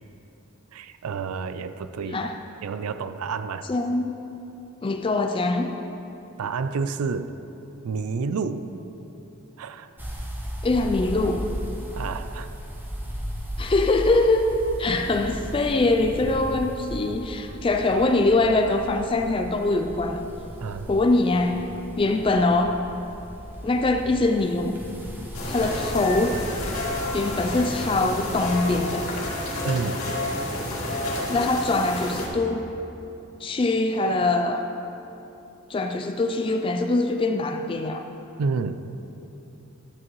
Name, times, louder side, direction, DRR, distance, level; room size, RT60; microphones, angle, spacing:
voice 1, 0.7-2.2 2.6-3.7 6.4-7.4 7.8-8.7 9.6-9.9 12.0-12.5 20.6-20.9 29.6-30.1 38.4-38.9, right 5 dB, 85° right, 11 dB, 0.4 m, -29 dB
voice 2, 3.7-4.2 4.8-5.7 10.6-11.5 13.6-14.5 14.8-20.3 20.9-21.7 22.0-22.8 23.6-24.8 25.5-26.4 27.1-29.1 31.3-32.7 33.4-34.7 35.7-38.1, left 2 dB, 25° left, 6 dB, 0.3 m, -23 dB
sound 1, 10.0-28.7, equal, 10° right, 0.8 m, -36 dB
sound 2, 25.3-32.3, left 1 dB, 85° left, 2.0 m, -30 dB
12.0 x 8.4 x 3.1 m, 3.0 s
head